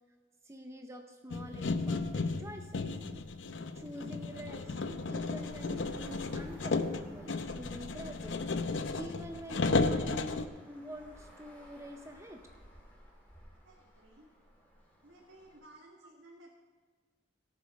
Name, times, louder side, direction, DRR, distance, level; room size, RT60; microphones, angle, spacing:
voice 1, 0.4-2.9 3.7-4.7 5.1-12.4 15.5-15.6, equal, 15° right, 5 dB, 0.6 m, -46 dB
sound 1, 1.3-10.5, left 3 dB, 80° left, 0.6 m, -34 dB
Traffic noise roadway noise, 4.2-15.6, equal, 10° left, 2.4 m, -56 dB
voice 2, 13.6-14.3 15.0-16.6, right 1 dB, 85° right, -2 dB, 1.5 m, -56 dB
17.5 x 6.8 x 5.3 m, 1.4 s
head